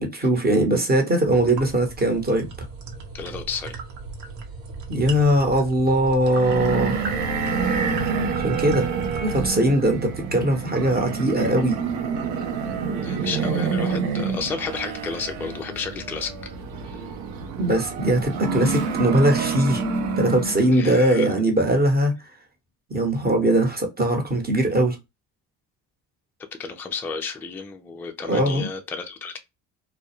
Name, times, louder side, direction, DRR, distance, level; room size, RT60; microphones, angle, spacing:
voice 1, 0.0-2.5 4.9-7.0 8.4-8.9 9.2-11.8 17.6-19.8 20.2-22.1 22.9-25.0 28.3-28.7, right 1 dB, 20° right, 0.9 m, -20 dB
sound 1, 1.2-9.5, right 4 dB, 65° right, 0.9 m, -36 dB
voice 2, 3.1-3.8 13.0-16.3 20.7-21.3 26.6-29.4, left 5 dB, 5° left, 0.3 m, -32 dB
sound 2, 6.3-20.8, right 5 dB, 90° right, 0.6 m, -27 dB
2.2 x 2.1 x 2.8 m
supercardioid pair, 65°, 49 cm